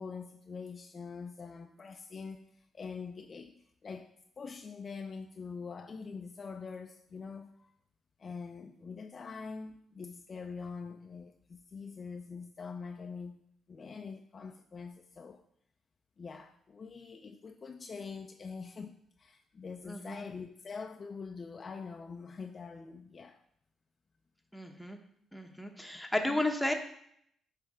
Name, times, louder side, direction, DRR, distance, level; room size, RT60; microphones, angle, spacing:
voice 1, 0.0-2.5 2.7-7.7 8.2-13.4 13.7-15.4 16.2-23.4 26.2-26.4, left 5 dB, 40° left, 6 dB, 0.5 m, -44 dB
voice 2, 19.9-20.2 24.5-25.0 25.3-26.7, left 1 dB, ahead, 3 dB, 1.0 m, -33 dB
7.9 x 3.3 x 4.9 m, 0.69 s
cardioid pair, 90°, 0 cm